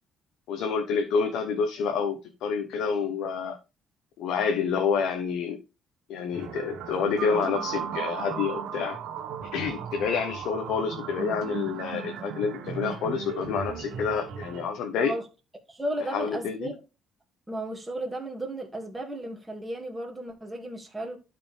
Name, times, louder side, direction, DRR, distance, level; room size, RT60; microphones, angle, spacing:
voice 1, 0.5-3.6 4.2-5.6 6.1-9.0 9.5-15.1 16.1-16.7, left 6 dB, 80° left, 1.2 m, -28 dB
sound 1, 6.3-14.7, right 8 dB, 85° right, 1.4 m, -36 dB
voice 2, 15.7-16.8 17.5-21.2, right 1 dB, 10° right, 2.4 m, -34 dB
12.0 x 4.9 x 3.5 m
cardioid pair, 130°, 0 cm